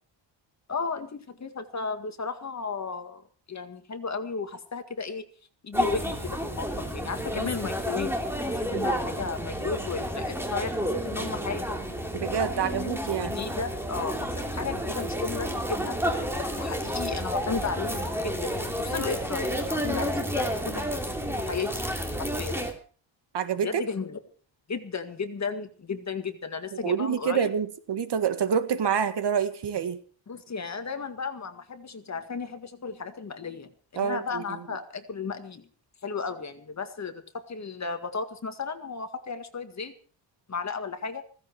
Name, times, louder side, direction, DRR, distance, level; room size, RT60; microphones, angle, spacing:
voice 1, 0.7-5.3 5.6-8.1 8.5-10.7 11.0-11.8 12.5-16.0 16.4-21.0 21.4-21.9 22.4-22.6 23.6-24.2 24.7-27.5 30.3-35.7 36.0-39.9 40.5-41.2, left 5 dB, 35° left, 7 dB, 1.9 m, -34 dB
sound 1, 5.7-22.7, equal, 5° right, 2.9 m, -30 dB
voice 2, 12.1-13.3 23.3-23.9 26.8-30.0 34.0-34.4, right 7 dB, 60° right, 11 dB, 1.7 m, -27 dB
16.0 x 15.0 x 4.7 m, 0.42 s
wide cardioid pair, 130°, 47 cm